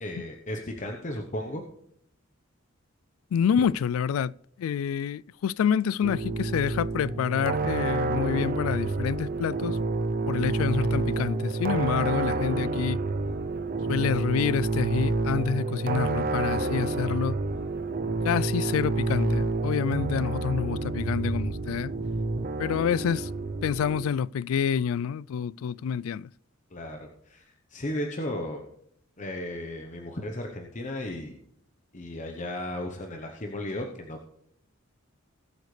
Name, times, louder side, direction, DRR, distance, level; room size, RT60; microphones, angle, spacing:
voice 1, 0.0-1.6 26.7-28.7 29.2-31.3 31.9-34.3, left 1 dB, 35° left, 1.0 m, -35 dB
voice 2, 3.3-4.3 4.6-9.8 10.3-13.0 13.9-17.4 18.2-21.9 22.6-23.3 23.6-26.3, left 7 dB, 80° left, 0.3 m, -27 dB
sound 1, 6.0-24.1, right 3 dB, 45° right, 0.6 m, -29 dB
19.5 x 8.2 x 3.3 m
head